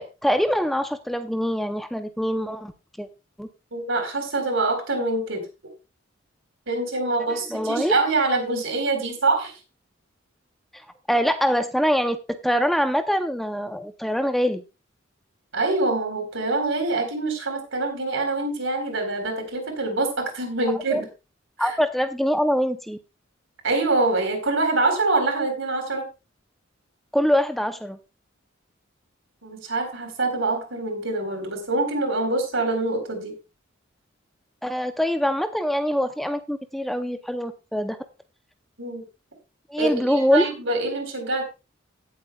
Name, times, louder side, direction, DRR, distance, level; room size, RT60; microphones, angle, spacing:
voice 1, 0.0-2.7 3.0-3.1 3.4-3.5 7.3-8.0 11.1-14.6 20.9-21.0 21.6-23.0 27.1-28.0 34.6-38.0 39.7-40.5, equal, ahead, 8 dB, 0.6 m, -24 dB
voice 2, 3.7-5.4 6.7-9.6 15.5-21.1 21.6-21.7 23.6-26.1 29.4-33.4 38.8-39.1 39.8-41.4, right 2 dB, 75° right, 4 dB, 4.0 m, -25 dB
17.5 x 7.8 x 2.3 m, 0.27 s
head